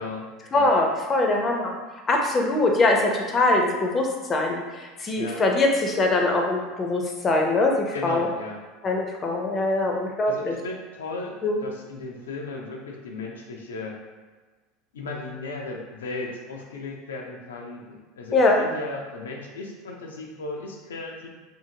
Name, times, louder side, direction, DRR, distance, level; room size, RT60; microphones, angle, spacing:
voice 1, 0.0-0.7 5.2-5.4 7.9-8.6 10.2-14.0 14.9-21.3, left 3 dB, 90° left, 0 dB, 0.5 m, -36 dB
voice 2, 0.5-1.8 2.1-8.3 8.8-10.5 11.4-11.6 18.3-18.6, left 2 dB, 30° left, 1 dB, 0.6 m, -22 dB
2.7 x 2.7 x 2.7 m, 1.3 s
hypercardioid pair, 90°, 0 cm